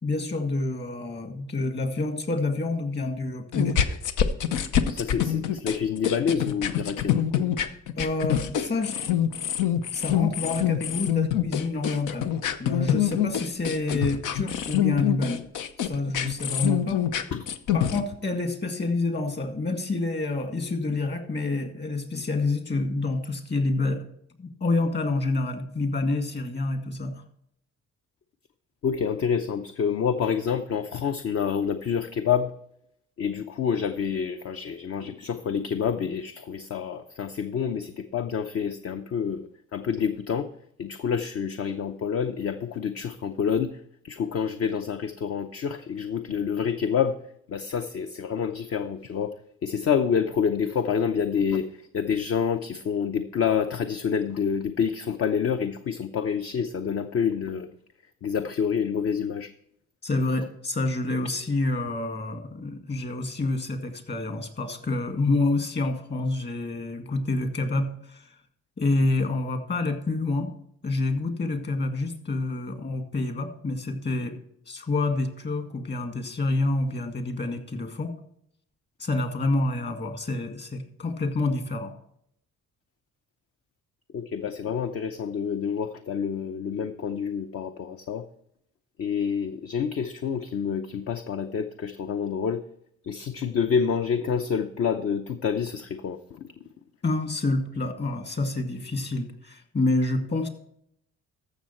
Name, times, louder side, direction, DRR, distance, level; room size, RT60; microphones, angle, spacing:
voice 1, 0.0-3.8 8.0-9.1 9.9-12.3 12.6-15.4 15.8-17.0 17.7-24.0 24.4-27.2 60.0-68.3 68.8-70.5 70.8-74.4 74.7-78.2 79.0-81.9 97.0-100.5, left 2 dB, 35° left, 6 dB, 1.9 m, -28 dB
sound 1, 3.5-18.0, left 10 dB, 85° left, 0.8 m, -25 dB
voice 2, 4.9-7.4 28.8-32.5 33.2-39.5 39.7-40.5 40.8-43.7 44.1-47.1 47.5-49.3 49.6-51.7 51.9-57.7 58.2-59.5 84.1-88.2 89.0-92.6 93.1-96.2, left 7 dB, 50° left, 8 dB, 0.7 m, -27 dB
14.0 x 6.4 x 4.4 m, 0.71 s
cardioid pair, 90°, 30 cm